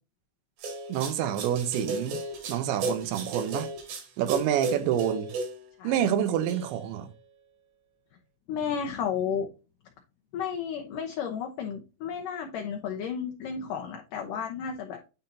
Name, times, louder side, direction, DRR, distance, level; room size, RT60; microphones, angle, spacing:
sound 1, 0.6-5.7 6.5-7.0, right 2 dB, 60° right, 3.6 m, -35 dB
voice 1, 0.9-2.2 2.5-3.7 4.2-5.3 5.8-7.1, right 10 dB, 90° right, 3.2 m, -27 dB
voice 2, 5.8-6.1 8.5-9.5 10.3-15.0, left 7 dB, 75° left, 2.0 m, -32 dB
10.5 x 4.0 x 2.8 m
omnidirectional pair, 5.1 m